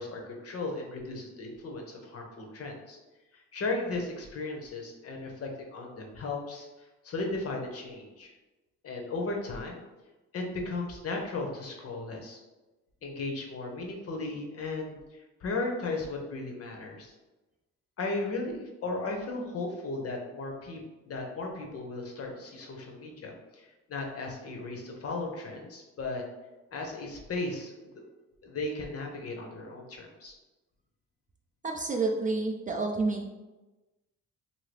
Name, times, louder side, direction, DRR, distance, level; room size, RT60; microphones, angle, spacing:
voice 1, 0.0-3.0 3.3-6.7 7.0-8.3 8.8-9.8 10.3-12.4 13.0-17.1 18.0-20.8 21.1-26.2 26.7-28.0 28.4-30.4, left 3 dB, 50° left, 1 dB, 0.8 m, -36 dB
voice 2, 31.6-33.3, right 3 dB, 25° right, 1 dB, 0.4 m, -29 dB
2.7 x 2.7 x 3.2 m, 1.1 s
cardioid pair, 90°, 30 cm